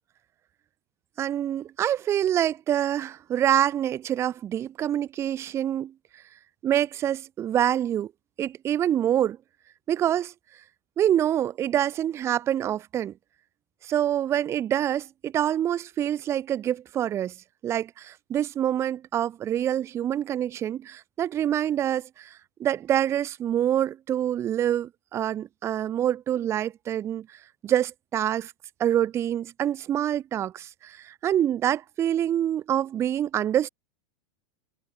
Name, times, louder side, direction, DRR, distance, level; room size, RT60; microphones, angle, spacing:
voice 1, 1.2-5.9 6.6-8.1 8.4-9.4 9.9-10.3 11.0-13.1 13.8-17.3 17.6-28.5 28.8-33.7, right 11 dB, 15° right, 0.6 m, -26 dB
supercardioid pair, 170°, 16 cm